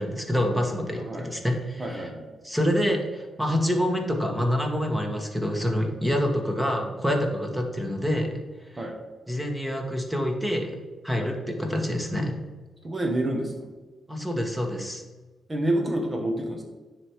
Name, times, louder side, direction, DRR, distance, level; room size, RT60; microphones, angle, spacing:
voice 1, 0.0-2.1 2.4-8.3 8.7-8.9 9.3-10.7 11.0-12.4 14.1-15.0, equal, 5° right, 2 dB, 1.3 m, -27 dB
voice 2, 0.9-1.3 1.8-2.3 8.8-9.0 11.2-11.3 12.8-13.5 15.5-16.6, right 1 dB, 30° right, 2 dB, 1.1 m, -28 dB
9.6 x 3.4 x 4.7 m, 1.2 s
cardioid pair, 70°, 0 cm